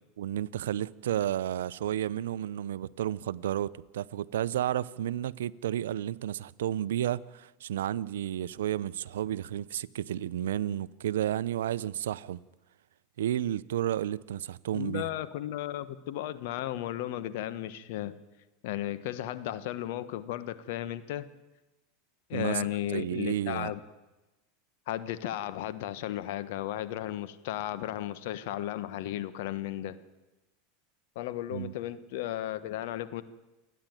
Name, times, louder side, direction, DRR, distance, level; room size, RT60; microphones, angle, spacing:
voice 1, 0.2-12.4 13.2-15.1 22.3-22.6 22.9-23.7 31.5-31.7, right 11 dB, 85° right, 0.6 m, -32 dB
voice 2, 14.7-18.2 18.6-21.3 22.3-23.8 24.9-30.0 31.1-33.2, left 13 dB, 70° left, 1.3 m, -35 dB
28.0 x 10.0 x 9.2 m
supercardioid pair, 115°, 0 cm